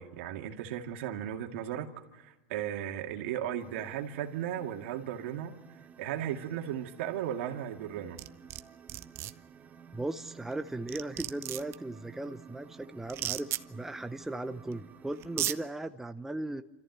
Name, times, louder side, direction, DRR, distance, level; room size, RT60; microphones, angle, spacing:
voice 1, 0.0-1.9 2.1-5.5 6.0-8.2, right 10 dB, 70° right, 2.3 m, -36 dB
sound 1, 3.6-15.7, right 7 dB, 25° right, 1.5 m, -54 dB
sound 2, 8.2-8.6 8.9-9.3 10.5-10.6 10.9-11.7 13.1-13.6 14.7-14.8 15.2-15.6, right 14 dB, 40° right, 0.7 m, -33 dB
voice 2, 9.9-16.6, right 2 dB, 5° right, 0.7 m, -37 dB
27.5 x 14.5 x 9.5 m
supercardioid pair, 120°, 7 cm